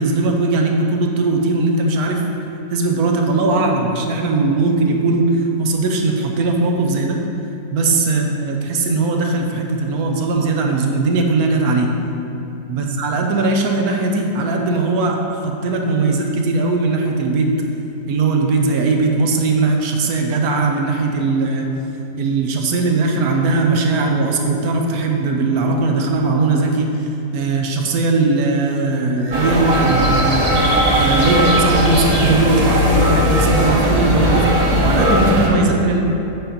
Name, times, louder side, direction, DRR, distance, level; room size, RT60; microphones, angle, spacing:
voice 1, 0.0-2.2 2.7-7.2 7.7-11.9 12.7-17.5 18.1-21.7 22.2-27.1 27.3-36.0, right 3 dB, 70° right, 2 dB, 1.2 m, -19 dB
sound 1, 29.3-35.5, equal, 30° right, 0.8 m, -17 dB
7.7 x 4.3 x 5.2 m, 2.9 s
omnidirectional pair, 1.7 m